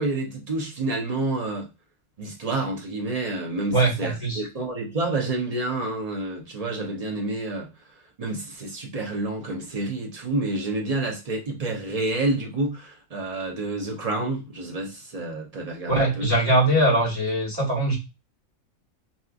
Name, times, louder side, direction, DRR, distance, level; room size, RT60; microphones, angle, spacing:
voice 1, 0.0-1.7 2.2-7.7 8.2-16.3, right 2 dB, 35° right, 0.7 m, -29 dB
voice 2, 3.7-4.5 15.9-18.0, right 1 dB, 15° right, 1.7 m, -21 dB
3.0 x 2.8 x 2.4 m
omnidirectional pair, 1.5 m